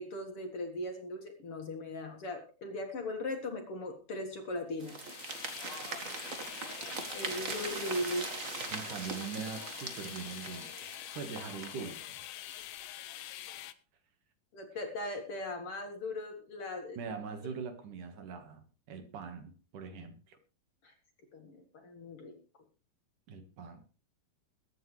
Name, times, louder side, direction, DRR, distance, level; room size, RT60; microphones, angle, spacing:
voice 1, 0.0-5.2 7.1-8.3 14.5-17.0 20.8-20.9 21.3-22.6, left 1 dB, 50° left, 2.4 m, -39 dB
sound 1, 4.8-13.7, left 13 dB, 75° left, 2.2 m, -45 dB
sound 2, 4.8-12.0, right 4 dB, 40° right, 1.2 m, -41 dB
voice 2, 8.7-10.8 11.1-12.2 17.0-20.4 23.3-23.8, right 6 dB, 70° right, 3.1 m, -42 dB
22.0 x 9.6 x 3.3 m
omnidirectional pair, 3.9 m